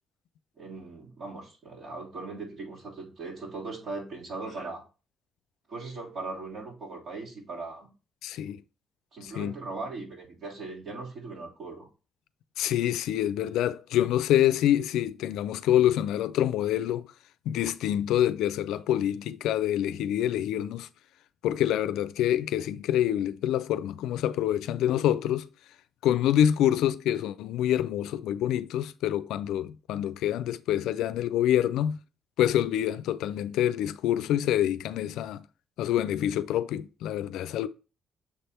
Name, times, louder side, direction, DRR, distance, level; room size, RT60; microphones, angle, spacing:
voice 1, 0.6-4.8 5.7-7.9 9.1-11.9, right 3 dB, 60° right, 3.1 m, -39 dB
voice 2, 8.2-8.6 9.2-9.5 12.6-17.1 17.5-20.9 21.4-25.5 26.0-32.0 32.4-35.4 35.8-37.7, left 11 dB, 90° left, 0.4 m, -26 dB
6.9 x 3.4 x 4.3 m
cardioid pair, 90°, 0 cm